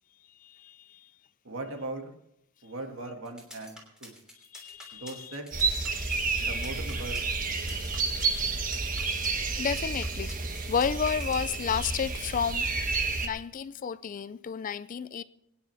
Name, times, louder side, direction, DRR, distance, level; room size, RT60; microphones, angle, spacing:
voice 1, 0.4-1.1 4.5-5.4 5.9-6.6 7.7-7.9 9.6-10.4 10.7-12.7 13.2-15.2, left 7 dB, 40° left, 0.4 m, -32 dB
voice 2, 1.4-2.1 2.6-3.8 4.0-4.2 5.0-5.5 6.4-7.2 7.6-7.8, right 2 dB, 70° right, 2.1 m, -39 dB
sound 1, 3.2-11.6, left 1 dB, 5° right, 3.2 m, -48 dB
sound 2, 5.5-13.3, right 4 dB, 40° right, 1.2 m, -30 dB
24.0 x 9.6 x 3.4 m
head